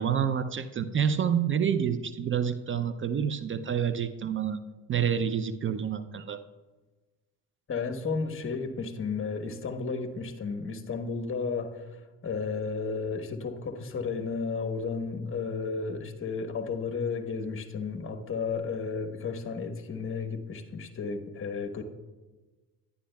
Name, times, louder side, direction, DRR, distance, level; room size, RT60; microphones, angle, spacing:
voice 1, 0.0-4.6 4.9-6.4, right 8 dB, 30° right, 12 dB, 0.4 m, -28 dB
voice 2, 7.7-21.8, left 4 dB, 30° left, 5 dB, 1.1 m, -33 dB
11.5 x 9.8 x 2.2 m, 1.2 s
hypercardioid pair, 70°, 43 cm